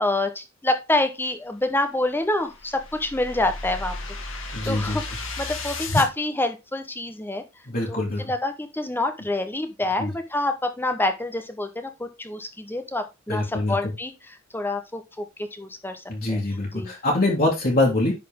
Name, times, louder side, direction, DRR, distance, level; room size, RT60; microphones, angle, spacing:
voice 1, 0.0-4.0 4.6-7.4 7.9-16.9, left 2 dB, 10° left, 7 dB, 0.9 m, -27 dB
sound 1, 2.0-6.1, left 2 dB, 65° left, 1.8 m, -33 dB
voice 2, 4.5-5.0 7.7-8.2 10.0-10.1 13.3-13.7 16.1-18.1, left 2 dB, 45° left, -3 dB, 2.2 m, -24 dB
10.5 x 4.2 x 3.6 m, 0.24 s
head